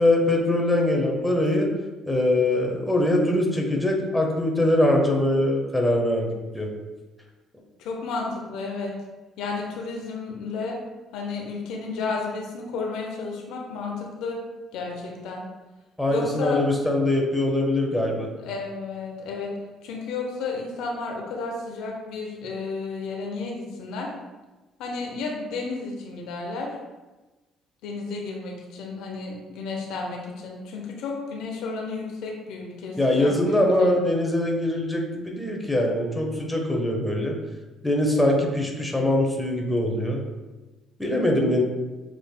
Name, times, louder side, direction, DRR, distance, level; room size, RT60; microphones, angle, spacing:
voice 1, 0.0-1.7 2.1-6.7 16.0-18.3 33.0-37.3 37.8-40.2 41.0-41.6, left 1 dB, 5° left, 0 dB, 1.1 m, -22 dB
voice 2, 7.8-8.9 9.4-10.8 11.1-14.4 14.7-15.4 16.1-16.6 18.4-19.5 19.8-24.1 24.8-26.7 27.8-34.0, left 4 dB, 65° left, -1 dB, 0.7 m, -32 dB
6.8 x 3.1 x 2.2 m, 1.2 s
hypercardioid pair, 50°, 0 cm